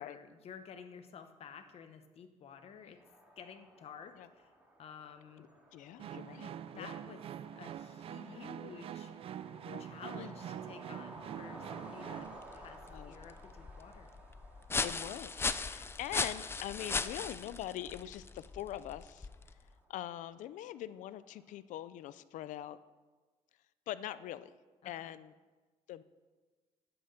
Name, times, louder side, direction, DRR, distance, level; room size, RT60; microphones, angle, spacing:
voice 1, 0.0-3.0 3.4-4.5 4.8-5.5 6.4-7.3 7.6-9.1 9.8-14.1 24.8-25.1, left 7 dB, 50° left, 8 dB, 1.0 m, -52 dB
sound 1, 3.0-21.5, right 1 dB, 10° right, 2.1 m, -56 dB
voice 2, 5.4-6.9 8.3-8.5 9.6-9.9 10.2-10.3 12.9-13.1 14.8-19.3 19.9-22.8 23.9-24.5 24.8-25.3 25.9-26.0, left 12 dB, 85° left, 15 dB, 0.5 m, -43 dB
sound 2, 6.0-12.4, right 10 dB, 50° right, 0.3 m, -45 dB
sound 3, 12.3-19.7, left 4 dB, 20° left, 0.4 m, -38 dB
10.0 x 8.1 x 6.7 m, 1.3 s
cardioid pair, 145°, 13 cm